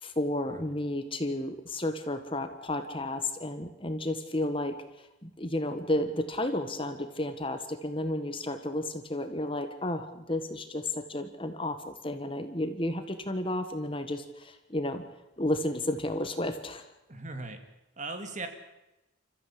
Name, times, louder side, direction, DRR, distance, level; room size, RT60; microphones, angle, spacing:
voice 1, 0.0-15.0 15.4-16.8, left 1 dB, 25° left, 8 dB, 1.6 m, -32 dB
voice 2, 17.1-17.6 18.0-18.5, right 3 dB, 35° right, 7 dB, 2.5 m, -38 dB
28.5 x 14.5 x 8.6 m, 0.95 s
head